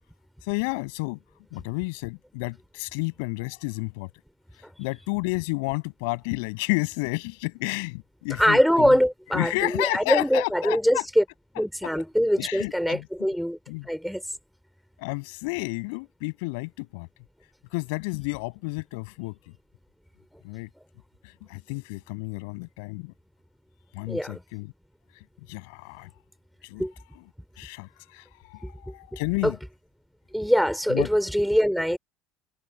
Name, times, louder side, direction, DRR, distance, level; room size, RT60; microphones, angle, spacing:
voice 1, 0.5-1.2 1.5-4.1 4.8-9.0 9.3-11.0 12.4-13.1 13.7-13.9 15.0-17.1 17.7-19.4 20.4-20.7 21.5-23.1 23.9-24.7 25.5-26.1 26.6-26.8 27.6-29.6 30.9-31.1, left 30 dB, 85° left, 6.9 m, -31 dB
voice 2, 8.4-11.2 11.5-13.6 13.8-14.2 24.1-24.4 26.8-26.9 28.6-28.9 29.4-29.5 30.3-32.0, equal, ahead, 3.2 m, -23 dB
cardioid pair, 155°, 0 cm